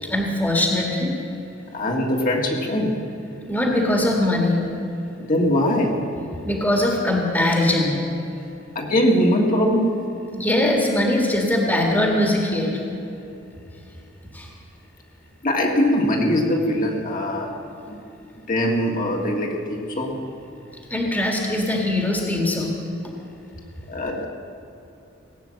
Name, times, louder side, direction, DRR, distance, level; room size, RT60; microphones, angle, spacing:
voice 1, 0.1-1.1 3.5-4.6 6.4-8.0 10.3-12.8 14.3-14.5 20.9-22.8, left 1 dB, 10° left, 0 dB, 1.8 m, -21 dB
voice 2, 1.7-3.0 5.2-6.1 8.7-10.0 15.4-17.6 17.9-18.0 18.5-20.2 23.9-24.2, equal, 45° left, -1 dB, 1.7 m, -21 dB
18.0 x 9.0 x 7.5 m, 2.8 s
head